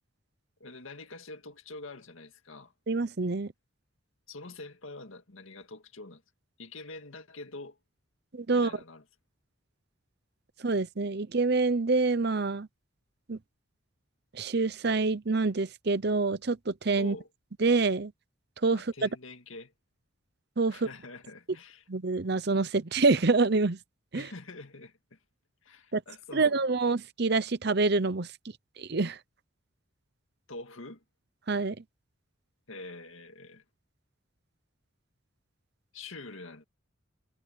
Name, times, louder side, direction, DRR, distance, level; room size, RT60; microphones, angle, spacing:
voice 1, 0.6-2.7 4.3-6.2 6.6-7.8 8.5-9.0 17.0-17.3 18.7-19.7 20.7-21.8 24.1-25.2 25.6-26.6 30.5-31.0 32.7-33.6 35.9-36.6, left 2 dB, 85° left, 2.0 m, -45 dB
voice 2, 2.9-3.5 8.3-8.7 10.6-12.7 13.3-13.4 14.3-17.2 17.6-18.1 18.6-19.1 20.6-20.9 21.9-23.8 24.1-24.3 25.9-26.0 26.3-28.3 28.8-29.2 31.5-31.8, right 3 dB, 55° right, 0.8 m, -26 dB
head